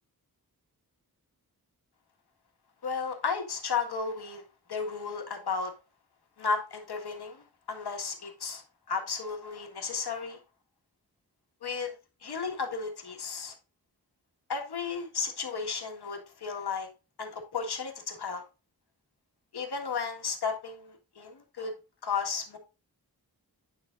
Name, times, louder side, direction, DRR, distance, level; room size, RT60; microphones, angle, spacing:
voice 1, 2.8-4.4 4.7-5.7 6.4-8.6 8.9-10.4 11.6-11.9 12.2-13.5 14.5-16.9 17.2-18.4 19.5-21.7 22.0-22.6, left 5 dB, 90° left, 1.8 m, -34 dB
9.3 x 7.0 x 2.5 m
wide cardioid pair, 110°, 38 cm